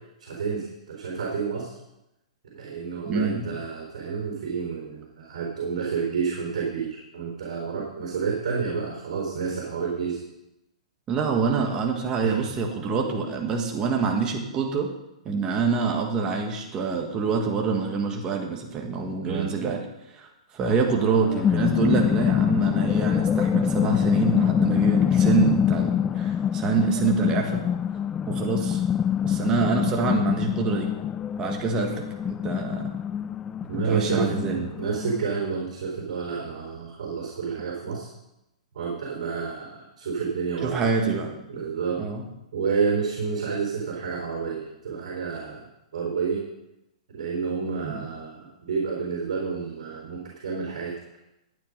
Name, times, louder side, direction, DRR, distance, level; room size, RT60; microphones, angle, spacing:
voice 1, 0.2-1.8 2.5-10.2 12.2-12.4 19.2-19.5 33.7-38.1 38.7-40.9 41.5-42.0 42.5-45.7 45.9-46.4 47.1-50.9, right 5 dB, 70° right, -2 dB, 4.3 m, -29 dB
voice 2, 3.1-3.5 11.1-14.9 15.2-19.8 20.1-20.3 20.5-27.6 28.3-28.8 29.2-30.9 31.4-32.9 33.7-34.6 40.6-41.4 42.0-42.2 47.8-48.1, right 5 dB, 20° right, 2 dB, 1.6 m, -26 dB
sound 1, 21.0-35.2, left 8 dB, 15° left, 0.4 m, -25 dB
13.0 x 9.1 x 5.3 m, 0.91 s
hypercardioid pair, 150°, 4 cm